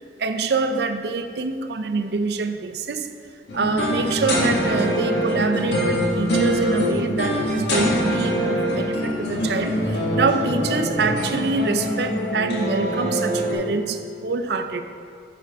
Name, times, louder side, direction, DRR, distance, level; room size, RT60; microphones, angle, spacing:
voice 1, 0.2-3.1 3.5-14.8, right 3 dB, 65° right, 7 dB, 0.5 m, -25 dB
sound 1, 3.5-13.5, equal, 75° left, 1.6 m, -23 dB
9.3 x 5.9 x 3.5 m, 2.4 s
head